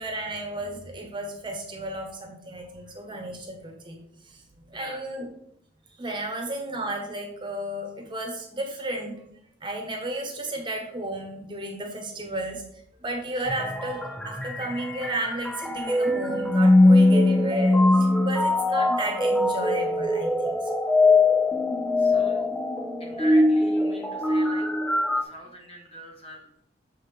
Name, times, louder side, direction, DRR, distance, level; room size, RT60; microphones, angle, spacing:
voice 1, 0.0-4.0 4.2-4.4 4.7-5.3 6.0-9.2 9.6-12.6 13.0-20.8, right 1 dB, 25° right, 2 dB, 1.1 m, -33 dB
voice 2, 4.7-5.1 22.0-22.5 23.0-24.7 25.1-26.5, right 1 dB, 30° left, 1 dB, 1.3 m, -42 dB
sound 1, 13.5-25.2, left 2 dB, 5° left, 0.4 m, -22 dB
7.0 x 5.6 x 3.3 m, 0.73 s
head